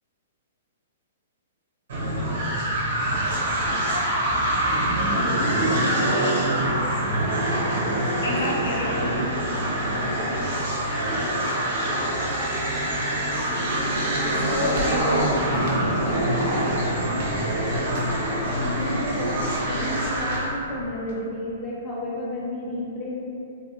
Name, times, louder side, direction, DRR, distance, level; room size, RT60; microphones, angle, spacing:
sound 1, 1.9-20.5, right 1 dB, 75° right, 0.8 m, -25 dB
voice 1, 8.2-9.3 14.4-15.4 16.1-16.3, left 1 dB, 85° left, -4 dB, 0.7 m, -29 dB
sound 2, 13.7-21.1, equal, 50° right, 0.5 m, -37 dB
voice 2, 14.8-17.3 17.6-23.2, left 1 dB, 15° left, -6 dB, 0.4 m, -33 dB
3.5 x 2.4 x 2.7 m, 2.8 s
hypercardioid pair, 165°, 0 cm